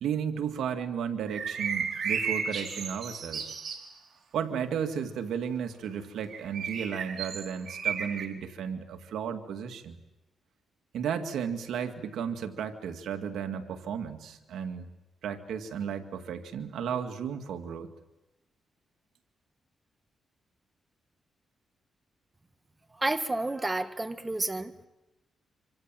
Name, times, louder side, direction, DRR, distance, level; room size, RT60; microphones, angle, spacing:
voice 1, 0.0-3.5 4.3-10.0 10.9-14.9 15.2-17.9, right 7 dB, 85° right, 6 dB, 2.1 m, -34 dB
sound 1, 1.3-3.9 6.3-8.3, right 6 dB, 65° right, 4.2 m, -33 dB
voice 2, 23.0-24.7, right 2 dB, 20° right, 9 dB, 1.8 m, -30 dB
26.5 x 26.5 x 7.6 m, 0.98 s
cardioid pair, 80°, 0 cm